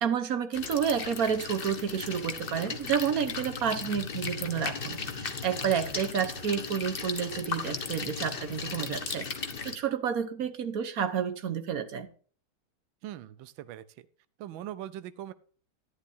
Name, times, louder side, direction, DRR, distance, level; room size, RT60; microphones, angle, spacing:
voice 1, 0.0-12.1, right 7 dB, 55° right, 1.2 m, -30 dB
sound 1, 0.5-9.8, left 5 dB, 40° left, 0.9 m, -36 dB
voice 2, 13.0-13.8 14.4-15.3, right 12 dB, 75° right, 1.4 m, -40 dB
11.5 x 11.0 x 2.7 m
omnidirectional pair, 2.3 m